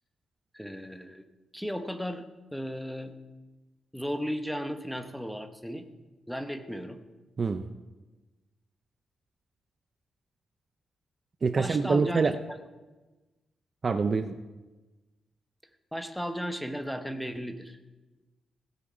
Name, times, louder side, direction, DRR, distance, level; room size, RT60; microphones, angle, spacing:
voice 1, 0.5-1.2 1.5-3.1 3.9-5.9 6.3-7.0 11.5-12.2 15.9-17.8, equal, ahead, 7 dB, 0.8 m, -35 dB
voice 2, 7.4-7.7 11.4-12.3 13.8-14.3, right 4 dB, 30° right, 9 dB, 0.5 m, -25 dB
16.5 x 8.2 x 5.0 m, 1.2 s
wide cardioid pair, 155°, 0 cm